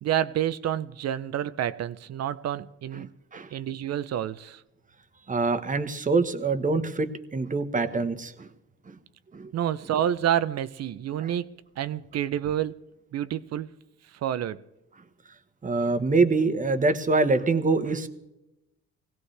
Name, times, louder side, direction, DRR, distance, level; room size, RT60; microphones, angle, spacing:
voice 1, 0.0-3.1 3.5-4.6 9.5-11.5 11.8-12.7 13.1-13.7 14.2-14.6, right 10 dB, 60° right, 0.5 m, -28 dB
voice 2, 5.3-8.5 8.9-9.0 9.3-9.5 11.2-11.3 15.6-18.1, right 3 dB, 25° right, 1.1 m, -25 dB
19.5 x 17.0 x 3.3 m
cardioid pair, 90°, 30 cm